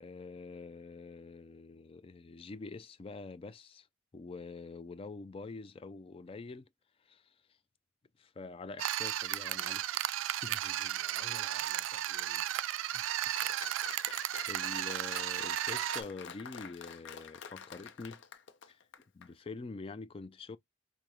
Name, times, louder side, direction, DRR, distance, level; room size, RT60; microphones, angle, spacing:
voice 1, 0.0-3.9 4.1-6.7 7.0-7.3 8.2-10.6 13.4-13.8 14.5-18.2 18.7-18.8 19.1-20.6, left 3 dB, 30° left, 0.3 m, -46 dB
sound 1, 8.8-16.0, right 12 dB, 75° right, 0.3 m, -34 dB
voice 2, 10.5-12.4 12.8-13.0, left 1 dB, 45° left, 1.3 m, -53 dB
Applause, 13.4-19.3, left 6 dB, 65° left, 0.6 m, -48 dB
5.0 x 2.0 x 2.9 m
head